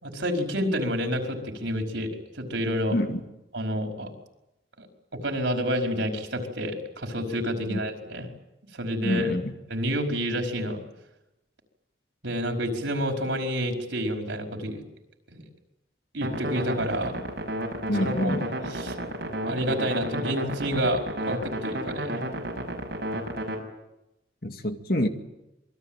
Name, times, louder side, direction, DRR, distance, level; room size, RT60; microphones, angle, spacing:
voice 1, 0.0-3.0 3.5-4.1 4.8-4.9 5.1-8.3 8.7-9.3 9.7-10.8 12.2-14.8 15.3-15.4 16.1-17.2 17.9-18.4 18.7-19.0 19.4-22.2, equal, 85° right, 3 dB, 5.0 m, -29 dB
voice 2, 9.0-9.5 17.9-18.5 24.4-25.1, equal, 55° left, 6 dB, 2.3 m, -26 dB
sound 1, 16.2-23.6, right 1 dB, 60° right, 6.3 m, -32 dB
27.0 x 21.5 x 9.1 m, 0.92 s
head